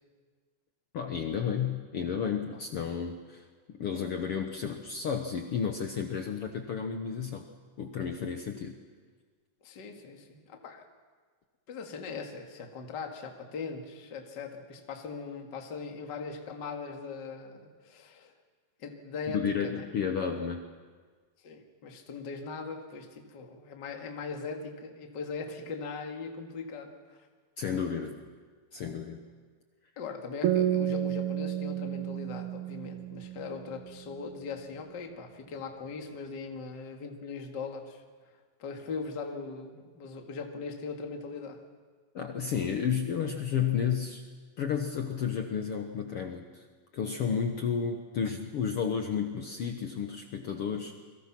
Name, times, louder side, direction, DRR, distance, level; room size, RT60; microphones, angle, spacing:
voice 1, 0.9-3.4 3.8-7.4 7.8-8.7 19.3-20.6 27.6-28.2 28.7-29.2 42.1-44.2 44.6-46.6 46.9-50.9, left 7 dB, 75° left, 5 dB, 1.3 m, -32 dB
voice 2, 9.6-10.8 11.7-18.3 18.8-19.8 21.4-27.3 30.0-38.0 38.6-41.6, left 4 dB, 35° left, 4 dB, 2.0 m, -40 dB
sound 1, 30.4-33.9, right 11 dB, 85° right, 3.0 m, -31 dB
29.5 x 22.5 x 6.0 m, 1.5 s
omnidirectional pair, 4.2 m